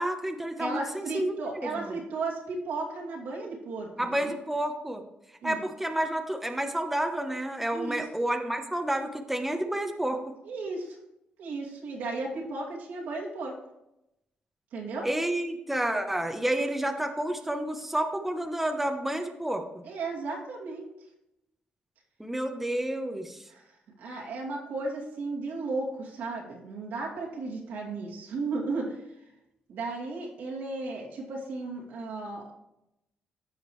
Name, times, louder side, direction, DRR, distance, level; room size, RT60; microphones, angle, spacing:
voice 1, 0.0-1.7 4.0-5.0 5.4-10.2 15.0-19.8 22.2-23.4, right 1 dB, 5° right, 5 dB, 1.0 m, -30 dB
voice 2, 0.6-4.4 5.4-5.6 7.7-8.1 10.4-11.0 11.4-13.5 14.7-15.1 19.8-20.9 23.5-23.6 24.0-29.0 29.7-32.5, right 3 dB, 85° right, -3 dB, 2.5 m, -35 dB
14.5 x 5.2 x 3.2 m, 0.86 s
cardioid pair, 90°, 3 cm